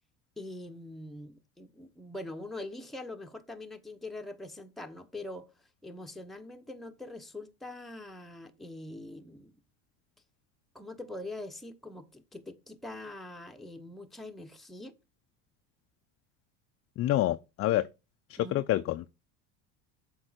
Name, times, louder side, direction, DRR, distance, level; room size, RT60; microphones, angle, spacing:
voice 1, 0.4-5.5 5.8-9.5 10.7-14.9 18.4-18.8, left 2 dB, ahead, 0.9 m, -43 dB
voice 2, 17.0-17.9 18.3-19.1, left 14 dB, 40° left, 0.5 m, -28 dB
7.5 x 3.9 x 6.5 m
supercardioid pair, 95°, 35 cm